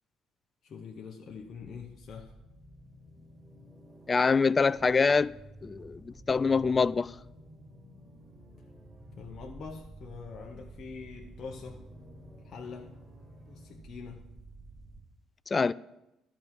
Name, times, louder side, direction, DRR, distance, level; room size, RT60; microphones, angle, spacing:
voice 1, 0.6-2.4 9.2-11.9 12.4-13.0 13.5-14.3, left 5 dB, 50° left, 0.9 m, -44 dB
sound 1, 1.3-15.0, right 1 dB, 25° right, 2.7 m, -51 dB
voice 2, 4.1-5.3 5.6-7.1 15.5-15.7, left 4 dB, 30° left, 0.3 m, -25 dB
12.0 x 5.0 x 7.4 m
hypercardioid pair, 60°, 0 cm